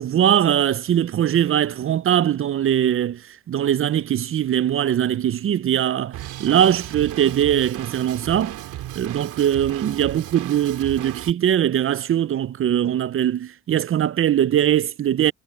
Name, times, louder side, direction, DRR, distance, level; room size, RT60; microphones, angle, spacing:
voice 1, 0.0-8.6 8.9-15.3, right 10 dB, 45° right, 0.6 m, -21 dB
Drum kit, 6.1-11.3, right 14 dB, 90° right, 2.4 m, -35 dB
cardioid pair, 90°, 30 cm